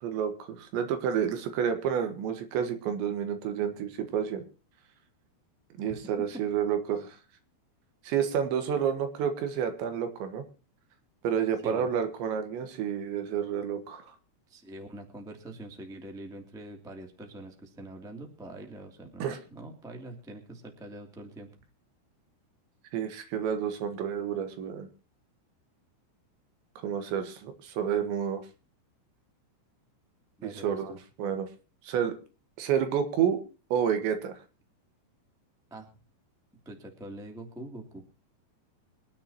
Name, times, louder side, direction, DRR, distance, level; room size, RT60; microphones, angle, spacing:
voice 1, 0.0-4.4 5.8-7.2 8.0-10.4 11.2-14.2 19.2-19.4 22.9-24.9 26.8-28.4 30.4-31.5 31.8-32.1 32.6-33.4 33.7-34.4, right 8 dB, 75° right, 8 dB, 3.6 m, -30 dB
voice 2, 14.5-21.5 30.4-31.0 35.7-35.9 36.6-38.0, right 1 dB, ahead, 2 dB, 0.9 m, -44 dB
25.5 x 10.5 x 2.9 m, 0.33 s
omnidirectional pair, 5.5 m